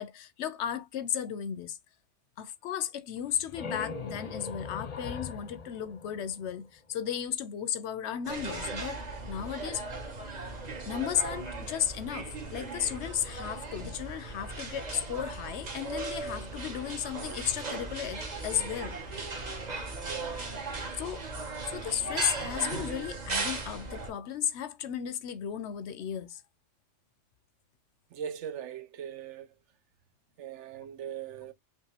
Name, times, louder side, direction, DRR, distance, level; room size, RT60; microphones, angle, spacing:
voice 1, 0.0-1.8 2.4-9.0 9.3-9.8 10.9-19.0 21.0-21.2 21.7-26.4, left 9 dB, 70° left, 0.8 m, -34 dB
sound 1, 3.2-6.8, left 4 dB, 40° left, 0.7 m, -40 dB
sound 2, 8.2-24.1, right 3 dB, 35° right, 1.2 m, -37 dB
voice 2, 20.1-20.6 28.1-29.5 30.4-31.5, right 9 dB, 75° right, 1.0 m, -40 dB
5.3 x 2.5 x 2.7 m
omnidirectional pair, 1.2 m